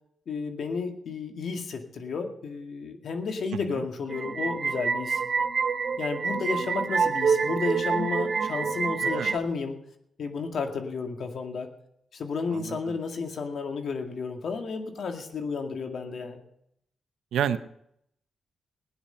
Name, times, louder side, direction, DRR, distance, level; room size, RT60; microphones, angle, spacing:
voice 1, 0.3-5.2 6.0-9.8 10.2-11.7 12.1-16.4, left 5 dB, 70° left, 5 dB, 2.1 m, -32 dB
voice 2, 3.5-3.8 9.0-9.3 12.5-13.0 17.3-17.6, right 9 dB, 90° right, 11 dB, 0.7 m, -30 dB
sound 1, 4.1-9.4, right 5 dB, 60° right, 0.9 m, -27 dB
18.0 x 10.0 x 5.7 m, 0.75 s
cardioid pair, 70°, 0 cm